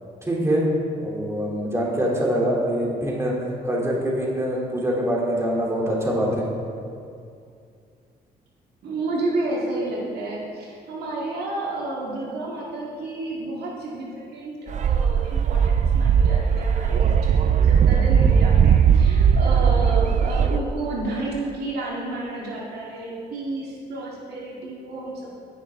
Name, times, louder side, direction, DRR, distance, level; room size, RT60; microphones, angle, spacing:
voice 1, 0.3-0.7 1.0-6.5, equal, 15° right, -4 dB, 2.9 m, -24 dB
voice 2, 8.8-25.3, right 2 dB, 75° right, -4 dB, 1.9 m, -31 dB
sound 1, 14.7-20.6, right 7 dB, 45° right, 0.4 m, -18 dB
16.5 x 6.6 x 3.7 m, 2.4 s
cardioid pair, 75°, 17 cm